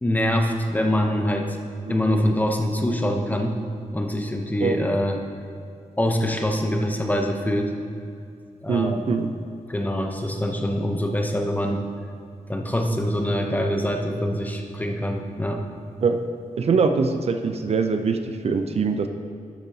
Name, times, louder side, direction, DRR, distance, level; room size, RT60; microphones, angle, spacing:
voice 1, 0.0-1.6 1.9-3.6 3.9-5.2 6.0-7.7 8.6-9.0 9.7-11.9 12.5-15.6, equal, 10° left, 3 dB, 0.7 m, -24 dB
voice 2, 1.9-2.2 4.6-4.8 8.7-9.3 16.0-16.2 16.6-19.1, right 5 dB, 50° right, 7 dB, 0.4 m, -23 dB
11.5 x 6.8 x 2.7 m, 2.4 s
wide cardioid pair, 140°, 13 cm